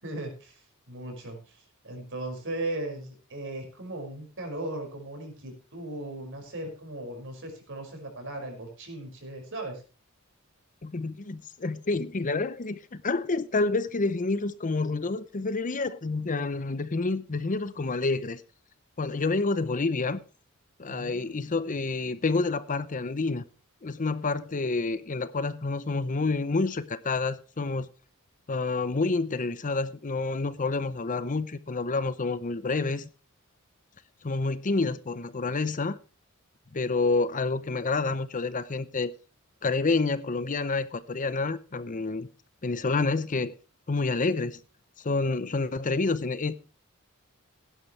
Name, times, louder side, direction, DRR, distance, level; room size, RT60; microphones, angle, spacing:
voice 1, 0.0-0.6 0.9-9.8 20.9-21.5, right 1 dB, 60° right, 5.5 m, -37 dB
voice 2, 10.8-18.4 19.0-20.2 20.8-23.4 23.8-27.9 28.5-33.1 34.2-36.0 36.7-39.1 39.6-42.3 42.6-43.5 43.9-44.6 45.0-46.5, left 3 dB, 35° left, 0.7 m, -28 dB
17.0 x 11.0 x 3.2 m
head